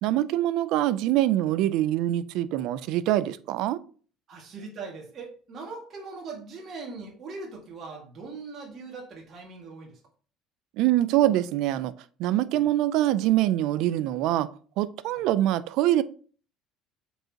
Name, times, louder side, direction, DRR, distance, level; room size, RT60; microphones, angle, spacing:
voice 1, 0.0-3.8 10.8-11.9 12.2-14.5 14.8-16.0, right 14 dB, 65° right, 0.4 m, -24 dB
voice 2, 4.3-10.0 12.5-12.6 15.1-15.2, right 4 dB, 35° right, 2.1 m, -40 dB
7.8 x 4.6 x 2.9 m
cardioid pair, 140°, 0 cm